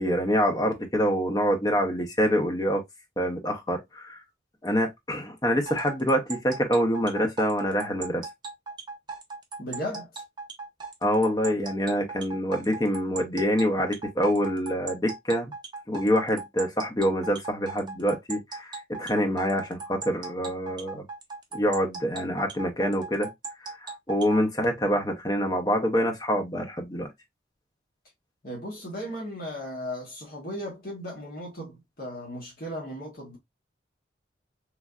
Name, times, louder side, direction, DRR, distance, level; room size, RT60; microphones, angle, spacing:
voice 1, 0.0-2.8 3.2-4.2 4.6-8.2 11.0-15.5 15.9-21.1 21.5-23.3 23.6-27.1, equal, 20° left, 0.6 m, -26 dB
sound 1, 5.7-24.4, right 4 dB, 25° right, 0.5 m, -38 dB
voice 2, 9.6-10.2 28.4-33.4, equal, 50° left, 1.0 m, -36 dB
3.2 x 2.5 x 2.3 m
head